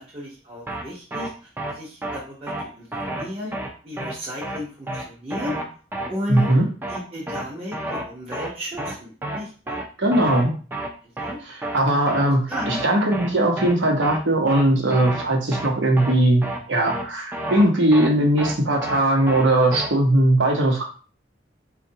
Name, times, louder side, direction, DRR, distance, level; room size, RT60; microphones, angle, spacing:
voice 1, 0.0-3.5 3.8-5.5 6.1-6.5 6.9-9.8 11.2-11.4 12.5-12.8, left 1 dB, 30° right, -5 dB, 0.8 m, -34 dB
sound 1, 0.7-0.8 1.1-1.3 1.6-1.7 2.0-2.2 2.5-2.6 2.9-3.2 3.5-3.7 4.0-4.1 4.4-4.6 4.9-5.0 5.3-5.6 5.9-6.1 6.4-6.5 6.8-7.0 7.3-7.4 7.7-8.0 8.3-8.5 8.8-8.9 9.2-9.4 9.7-9.8 10.1-10.4 10.7-10.9 11.2-11.3 11.6-11.8 12.1-12.2 12.5-12.8 13.1-13.3 13.6-13.7 14.0-14.2 14.5-14.6 14.9-15.2 15.5-15.7 16.0-16.1 16.4-16.6 16.9-17.0 17.3-17.6 17.9-18.1 18.4-18.5 18.8-19.0 19.3-19.4 19.7-19.9, right 1 dB, 10° right, 0.4 m, -30 dB
voice 2, 6.3-6.7 10.0-10.5 11.4-20.8, right 1 dB, 80° right, 1 dB, 1.0 m, -19 dB
4.1 x 2.5 x 2.7 m, 0.38 s
head